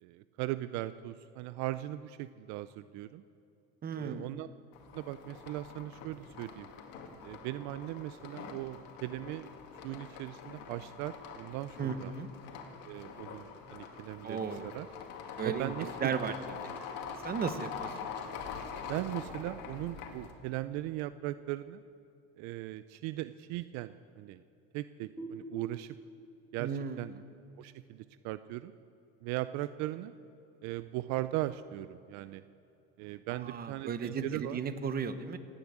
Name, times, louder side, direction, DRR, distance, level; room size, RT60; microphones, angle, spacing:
voice 1, 0.0-3.2 4.0-4.5 4.9-6.7 7.2-9.5 9.8-12.1 12.8-14.9 15.4-16.1 18.8-21.8 22.4-24.4 24.7-26.0 26.5-26.7 27.0-27.1 27.6-28.7 29.2-30.1 30.6-32.5 33.0-34.6, right 16 dB, 70° right, 13 dB, 0.6 m, -38 dB
voice 2, 3.8-4.3 11.8-12.3 14.2-14.7 15.4-15.7 16.0-16.3 17.2-17.9 26.6-27.1 33.3-35.4, right 6 dB, 30° right, 10 dB, 1.1 m, -35 dB
sound 1, 4.7-20.3, left 6 dB, 70° left, 2.3 m, -44 dB
sound 2, 25.2-28.6, right 2 dB, 5° left, 2.7 m, -48 dB
16.5 x 10.0 x 8.7 m, 2.8 s
cardioid pair, 125°, 29 cm